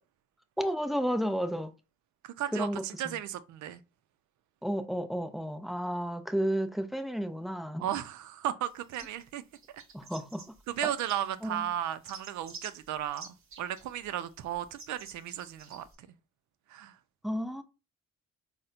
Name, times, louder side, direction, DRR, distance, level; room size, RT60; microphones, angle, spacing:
voice 1, 0.6-1.7 2.5-3.2 4.6-7.8 9.9-10.4 11.4-11.6 17.2-17.6, equal, ahead, 0.4 m, -32 dB
voice 2, 2.2-3.8 7.8-9.4 9.7-9.8 10.7-15.9 16.7-17.0, right 11 dB, 75° right, 0.5 m, -35 dB
sound 1, 8.6-9.3 9.5-11.5 11.8-16.0, right 4 dB, 45° right, 1.0 m, -50 dB
4.2 x 2.1 x 2.5 m
cardioid pair, 90°, 30 cm